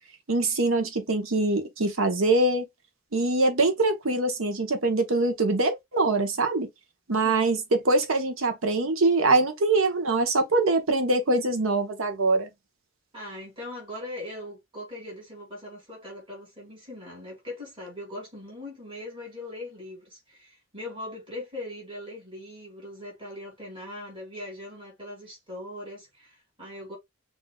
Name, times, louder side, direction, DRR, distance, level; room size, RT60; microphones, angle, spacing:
voice 1, 0.3-2.7 3.1-6.7 7.1-12.5, right 2 dB, 85° right, 1.0 m, -23 dB
voice 2, 13.1-27.0, left 1 dB, 25° right, 2.6 m, -40 dB
6.3 x 2.7 x 2.3 m
head